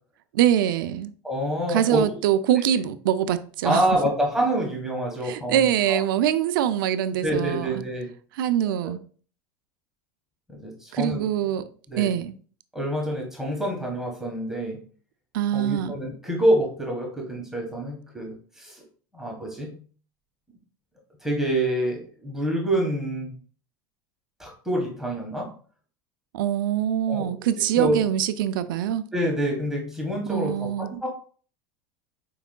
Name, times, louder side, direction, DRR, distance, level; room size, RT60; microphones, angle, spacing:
voice 1, 0.3-1.1 1.7-3.8 5.2-7.8 8.4-9.0 10.9-11.6 12.0-12.4 15.3-15.9 26.3-29.0 30.3-30.9, right 10 dB, 85° right, 0.4 m, -24 dB
voice 2, 1.2-2.2 3.6-6.0 7.2-8.1 8.8-8.9 10.5-11.2 11.9-12.2 12.7-14.8 15.5-18.8 19.1-19.8 21.2-23.3 24.4-25.5 27.1-27.3 27.7-28.0 29.1-31.1, right 1 dB, 5° right, 1.3 m, -27 dB
4.6 x 3.5 x 2.2 m
supercardioid pair, 115°, 11 cm